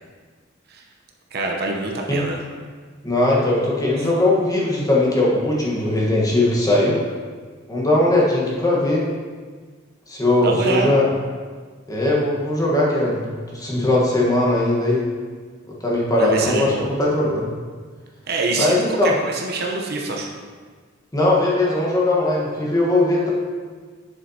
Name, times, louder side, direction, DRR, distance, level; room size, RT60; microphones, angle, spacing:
voice 1, 1.3-2.4 10.4-10.9 16.2-16.9 18.3-20.3, right 3 dB, 55° right, 0 dB, 0.8 m, -25 dB
voice 2, 3.0-7.0 7.7-9.1 10.1-11.1 11.9-15.0 15.6-17.5 18.6-19.1 21.1-23.3, left 1 dB, 20° left, -5 dB, 1.3 m, -19 dB
7.5 x 6.9 x 2.8 m, 1.5 s
head